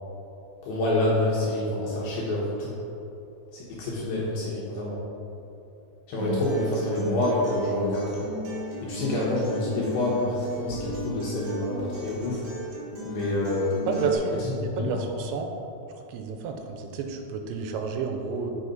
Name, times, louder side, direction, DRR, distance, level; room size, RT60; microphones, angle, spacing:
voice 1, 0.6-2.7 3.5-5.0 6.1-8.1 8.8-12.4 13.1-13.8 14.4-15.0, left 1 dB, 70° left, -6 dB, 2.3 m, -27 dB
Acoustic guitar, 6.2-14.2, right 1 dB, 65° right, 2.8 m, -34 dB
voice 2, 13.8-15.5 15.9-18.5, right 4 dB, 85° right, 4 dB, 2.9 m, -31 dB
7.7 x 5.4 x 3.9 m, 2.9 s
omnidirectional pair, 5.2 m